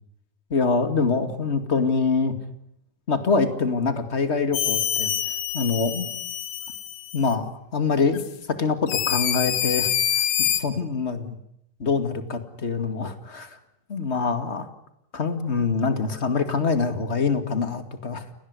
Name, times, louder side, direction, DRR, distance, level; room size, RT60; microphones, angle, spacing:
voice 1, 0.5-2.3 3.1-5.1 5.5-6.1 7.1-11.3 11.8-13.5 13.9-14.7 15.1-18.2, left 4 dB, 25° left, 9 dB, 2.2 m, -25 dB
sound 1, 4.5-7.3 8.1-8.3 8.9-10.6, left 10 dB, 80° left, 3.1 m, -26 dB
29.0 x 19.5 x 9.7 m, 0.79 s
omnidirectional pair, 3.5 m